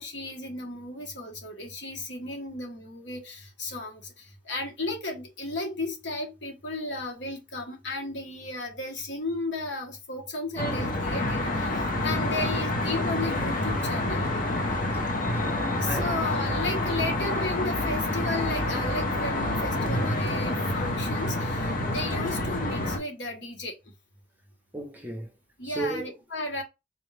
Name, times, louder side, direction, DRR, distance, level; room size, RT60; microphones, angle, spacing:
voice 1, 0.0-14.3 15.8-23.8 25.6-26.6, left 2 dB, 75° left, 1.3 m, -34 dB
Traffic noise roadway noise, 10.6-23.0, left 1 dB, 45° left, 0.8 m, -28 dB
voice 2, 15.2-16.2 21.8-22.0 24.7-25.3 25.6-26.1, right 2 dB, 10° right, 0.9 m, -35 dB
4.0 x 2.4 x 3.2 m
head